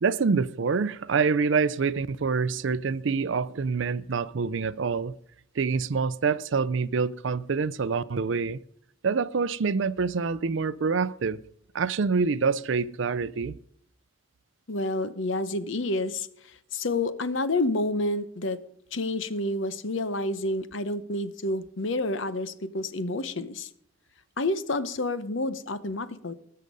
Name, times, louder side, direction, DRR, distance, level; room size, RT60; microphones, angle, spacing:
voice 1, 0.0-5.2 5.6-8.6 9.0-11.4 11.7-13.6, right 5 dB, 65° right, 0.5 m, -26 dB
voice 2, 14.7-16.3 16.7-18.6 18.9-23.7 24.4-26.3, left 2 dB, 65° left, 0.9 m, -29 dB
19.5 x 6.7 x 5.3 m
head